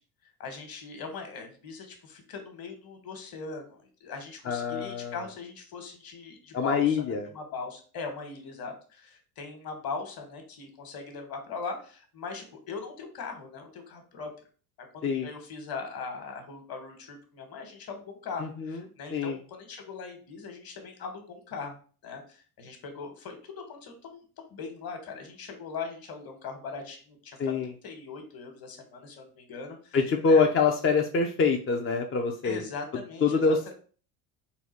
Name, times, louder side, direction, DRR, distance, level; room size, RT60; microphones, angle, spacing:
voice 1, 0.4-7.0 7.3-14.3 14.8-21.7 22.0-27.6 27.8-30.4 32.4-33.7, left 4 dB, 50° left, 5 dB, 1.5 m, -40 dB
voice 2, 4.5-5.2 6.5-7.3 15.0-15.3 18.4-18.8 19.1-19.4 27.4-27.7 29.9-32.6 33.2-33.7, left 4 dB, 30° left, 2 dB, 0.6 m, -25 dB
4.0 x 2.3 x 4.4 m, 0.40 s
supercardioid pair, 85°, 47 cm